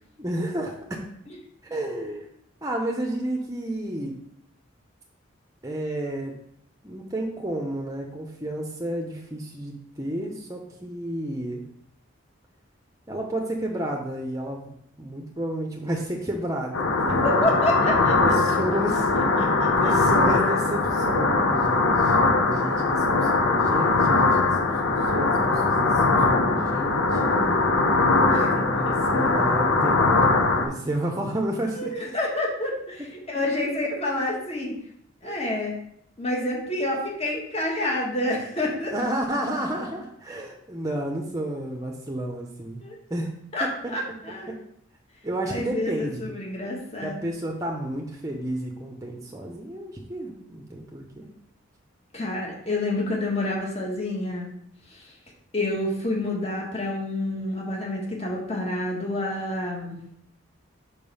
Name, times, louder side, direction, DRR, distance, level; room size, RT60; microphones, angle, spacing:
voice 1, 0.2-1.0 1.7-2.3 2.6-4.2 5.6-6.4 6.8-11.6 13.1-17.2 18.2-19.5 19.8-27.2 28.1-32.1 35.2-35.4 38.9-42.8 43.1-43.3 43.8-43.9 45.2-46.3 47.0-51.3, right 1 dB, 15° right, 1 dB, 0.7 m, -31 dB
sound 1, 16.7-30.7, left 3 dB, 75° left, 0.9 m, -21 dB
voice 2, 17.2-18.2 18.5-18.6 19.4-19.7 28.3-28.5 31.8-34.8 35.2-35.7 36.2-38.9 42.8-43.0 43.5-44.6 45.5-47.2 52.1-54.5 54.9-55.0 55.5-60.0, left 1 dB, 30° left, -2 dB, 1.7 m, -28 dB
5.3 x 4.7 x 5.5 m, 0.70 s
head